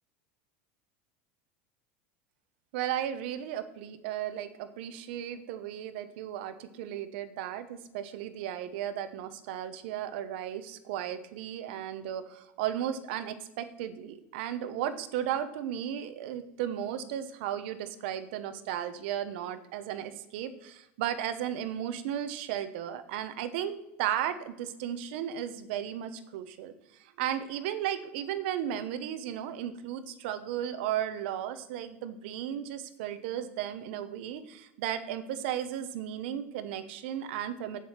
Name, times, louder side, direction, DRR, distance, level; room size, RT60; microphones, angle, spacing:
voice 1, 2.7-37.8, right 10 dB, 70° right, 11 dB, 1.0 m, -35 dB
8.5 x 7.5 x 5.9 m, 0.92 s
supercardioid pair, 165°, 6 cm